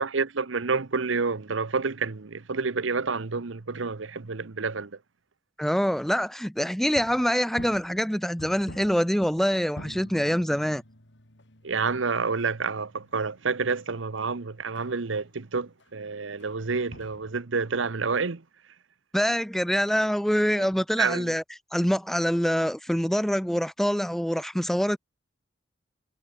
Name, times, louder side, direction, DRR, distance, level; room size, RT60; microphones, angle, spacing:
voice 1, 0.0-5.0 11.6-18.4 20.6-20.7 21.0-21.3, right 4 dB, 90° right, 0.9 m, -29 dB
voice 2, 5.6-10.8 19.1-21.4 21.7-25.0, equal, ahead, 1.3 m, -25 dB
Drums and gon in a buddhist monastery slow, 6.8-14.9 15.2-15.3 15.8-16.0 16.4-16.6 16.8-17.3, left 1 dB, 65° left, 4.9 m, -47 dB
head